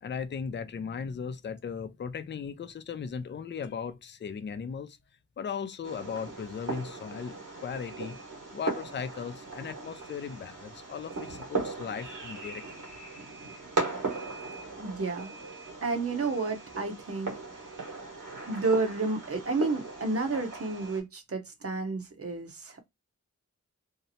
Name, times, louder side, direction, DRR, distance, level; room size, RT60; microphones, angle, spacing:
voice 1, 0.0-5.0 5.4-8.2 8.5-12.9, left 6 dB, 40° left, 0.4 m, -37 dB
Fireworks, 5.8-21.0, right 3 dB, 85° right, 1.3 m, -38 dB
voice 2, 14.7-15.3 15.8-17.7 18.4-22.8, right 3 dB, 50° right, 0.7 m, -31 dB
2.8 x 2.0 x 2.5 m
wide cardioid pair, 55°, 31 cm